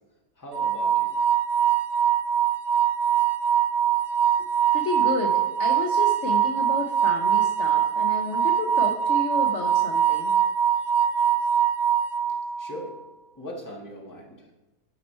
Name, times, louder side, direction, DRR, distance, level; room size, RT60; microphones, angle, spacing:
voice 1, 0.4-1.1 12.6-12.9 13.3-14.4, equal, 10° left, -1 dB, 1.3 m, -39 dB
sound 1, 0.5-12.8, right 9 dB, 70° right, 0.9 m, -23 dB
voice 2, 4.7-10.3, left 3 dB, 55° left, 3 dB, 0.9 m, -31 dB
9.4 x 5.6 x 4.4 m, 1.1 s
omnidirectional pair, 1.7 m